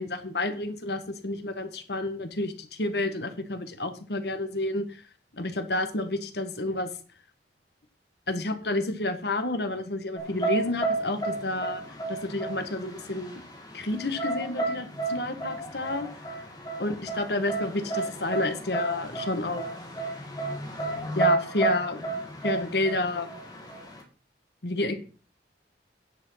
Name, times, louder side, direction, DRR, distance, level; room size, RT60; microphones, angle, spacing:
voice 1, 0.0-5.0 5.4-6.9 8.3-11.8 12.1-13.4 13.7-16.1 16.8-19.7 21.1-22.0 22.4-23.3 24.6-24.9, left 2 dB, 65° left, 8 dB, 1.6 m, -30 dB
sound 1, 10.2-24.0, right 3 dB, 20° left, 2.3 m, -32 dB
10.0 x 7.3 x 5.6 m, 0.38 s
head